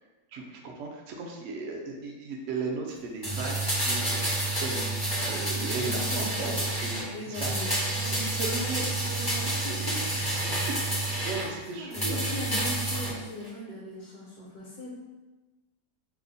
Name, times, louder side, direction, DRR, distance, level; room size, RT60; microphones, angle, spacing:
voice 1, 0.3-3.6 3.9-4.2 4.6-6.5 6.8-7.5 8.0-11.0 11.2-12.2, right 3 dB, 80° right, 0 dB, 0.7 m, -37 dB
sound 1, 3.2-7.1 7.3-11.5 11.9-13.1 13.4-13.5, right 2 dB, 10° left, 0.4 m, -29 dB
voice 2, 5.8-6.6 7.1-8.2 9.6-10.7 11.7-14.9, left 1 dB, 70° left, -5 dB, 1.1 m, -39 dB
3.0 x 2.0 x 3.8 m, 1.2 s
omnidirectional pair, 1.8 m